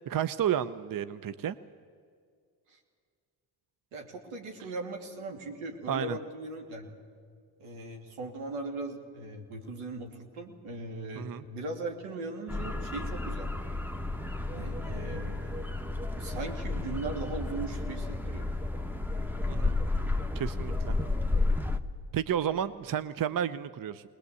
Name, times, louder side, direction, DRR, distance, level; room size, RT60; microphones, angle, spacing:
voice 1, 0.1-1.6 5.9-6.2 11.2-11.4 19.5-19.8 20.3-21.0 22.1-24.0, right 9 dB, 40° right, 14 dB, 0.7 m, -31 dB
voice 2, 3.9-6.9 7.6-13.5 14.5-15.6 16.2-18.5, right 2 dB, 80° right, 3 dB, 2.9 m, -39 dB
sound 1, 12.5-21.8, left 2 dB, 5° right, 1.3 m, -32 dB
20.0 x 20.0 x 8.4 m, 2.1 s
supercardioid pair, 55°, 50 cm